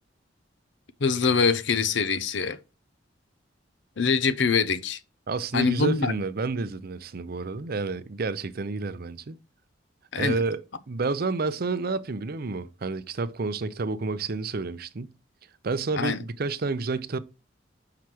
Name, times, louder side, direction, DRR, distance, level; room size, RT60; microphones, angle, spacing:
voice 1, 1.0-2.6 4.0-5.0 5.5-6.1 10.1-10.4 16.0-16.2, left 5 dB, 65° left, 0.7 m, -24 dB
voice 2, 5.3-9.4 10.2-10.6 10.9-15.1 15.6-17.2, right 3 dB, 50° right, 0.6 m, -30 dB
5.8 x 4.8 x 6.0 m
head